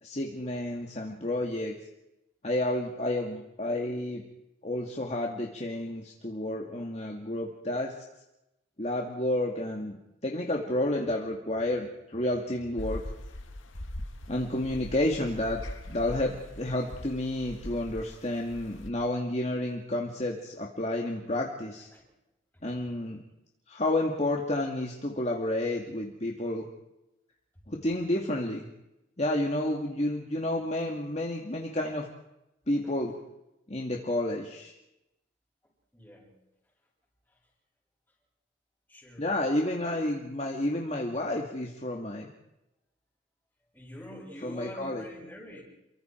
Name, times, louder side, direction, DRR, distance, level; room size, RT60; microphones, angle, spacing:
voice 1, 0.0-1.8 2.4-4.2 4.6-7.9 8.8-10.0 10.2-13.0 14.3-15.6 15.9-21.9 22.6-23.2 23.7-26.7 27.7-28.7 29.2-32.1 32.7-33.1 33.7-34.7 39.2-42.3 44.4-45.0, left 1 dB, 35° left, 0 dB, 2.3 m, -30 dB
sound 1, 12.8-18.9, left 1 dB, 90° left, 2.0 m, -41 dB
voice 2, 35.9-36.3 38.9-39.3 43.7-45.6, left 1 dB, 10° left, -3 dB, 7.6 m, -45 dB
29.5 x 24.0 x 4.6 m, 0.89 s
head